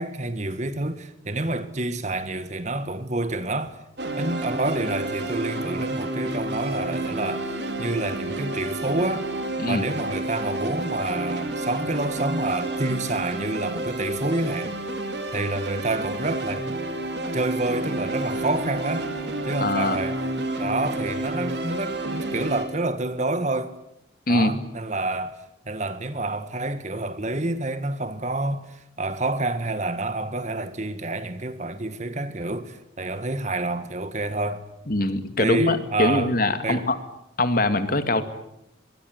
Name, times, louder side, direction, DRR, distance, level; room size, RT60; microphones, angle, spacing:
voice 1, 0.0-3.8 4.2-9.3 9.7-14.7 15.3-16.7 17.3-19.1 19.5-20.2 20.6-23.7 24.3-25.4 25.7-34.7 35.4-36.3 36.6-36.9, right 2 dB, 35° right, 1.7 m, -28 dB
sound 1, 4.0-22.6, right 1 dB, 60° right, 4.7 m, -30 dB
voice 2, 19.6-20.0 24.3-24.5 34.9-37.0 37.4-38.2, left 2 dB, 50° left, 2.3 m, -23 dB
24.5 x 22.0 x 9.6 m
head